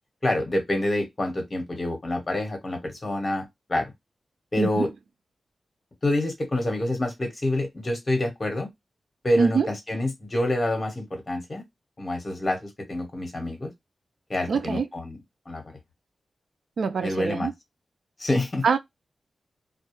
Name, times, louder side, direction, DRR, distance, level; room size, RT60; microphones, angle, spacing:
voice 1, 0.2-3.9 4.5-4.9 6.0-8.7 9.2-11.6 12.0-13.7 14.3-15.2 15.5-15.6 17.0-17.5 18.2-18.6, left 1 dB, 30° left, 1.1 m, -27 dB
voice 2, 4.6-4.9 9.4-9.7 14.5-14.9 16.8-17.5 18.6-18.8, right 5 dB, 75° right, 0.4 m, -24 dB
2.2 x 2.2 x 2.9 m
wide cardioid pair, 120°, 0 cm